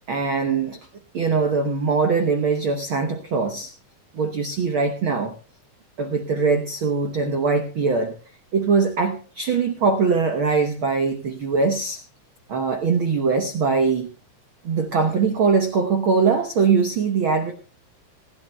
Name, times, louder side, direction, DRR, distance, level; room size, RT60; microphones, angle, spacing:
voice 1, 0.1-0.8 1.1-3.7 4.1-5.3 6.0-8.1 8.5-12.0 12.5-14.1 14.6-17.5, right 4 dB, 90° right, 6 dB, 1.1 m, -22 dB
27.0 x 12.0 x 2.3 m, 0.34 s
omnidirectional pair, 3.9 m